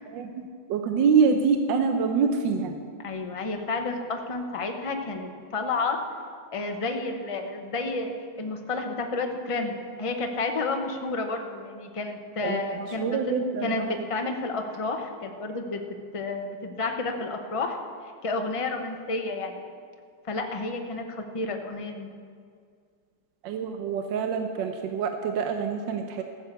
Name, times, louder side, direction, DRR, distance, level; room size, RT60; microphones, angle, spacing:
voice 1, 0.7-2.7 12.4-14.0 23.4-26.2, right 5 dB, 80° right, 5 dB, 1.4 m, -25 dB
voice 2, 3.0-6.0 6.5-13.3 13.6-15.8 16.1-17.8 18.2-19.6 20.3-22.1, left 3 dB, 30° left, 4 dB, 0.6 m, -31 dB
14.5 x 7.5 x 6.9 m, 2.1 s
omnidirectional pair, 2.0 m